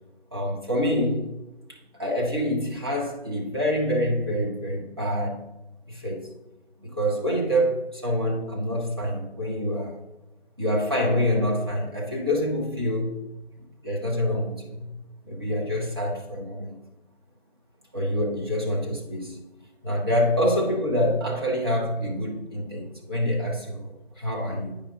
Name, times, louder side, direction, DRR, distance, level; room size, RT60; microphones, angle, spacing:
voice 1, 0.3-1.3 1.7-5.4 5.9-6.3 6.8-10.0 10.6-13.2 13.5-14.9 15.2-16.7 17.9-19.4 19.8-24.8, equal, 25° right, -3 dB, 1.0 m, -26 dB
9.7 x 5.0 x 3.6 m, 1.0 s
figure-of-eight pair, 170°, 32 cm